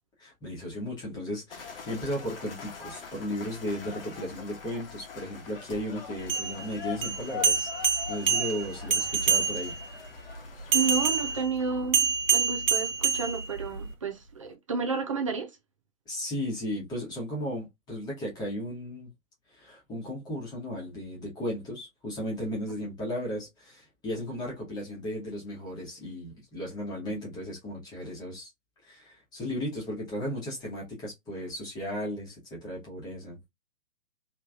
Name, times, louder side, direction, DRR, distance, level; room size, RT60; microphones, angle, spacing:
voice 1, 0.2-7.7 8.1-9.7 16.1-19.1 19.5-28.5 28.8-33.4, equal, 10° left, 1.2 m, -35 dB
sound 1, 1.5-11.4, left 7 dB, 40° left, 1.1 m, -43 dB
sound 2, 6.2-9.9 10.7-13.9, right 6 dB, 70° right, 0.8 m, -27 dB
voice 2, 10.7-15.5, right 5 dB, 25° right, 0.5 m, -31 dB
3.2 x 3.0 x 2.4 m
figure-of-eight pair, 130°, 41 cm